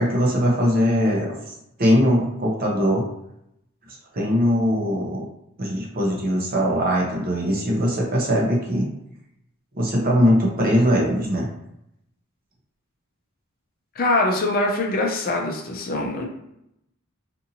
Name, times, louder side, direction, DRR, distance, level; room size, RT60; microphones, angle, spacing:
voice 1, 0.0-1.4 1.8-3.1 4.1-5.2 5.6-8.9 9.7-11.5, equal, 45° right, -2 dB, 0.7 m, -21 dB
voice 2, 14.0-16.3, left 2 dB, 45° left, 1 dB, 0.4 m, -23 dB
2.6 x 2.6 x 2.7 m, 0.80 s
head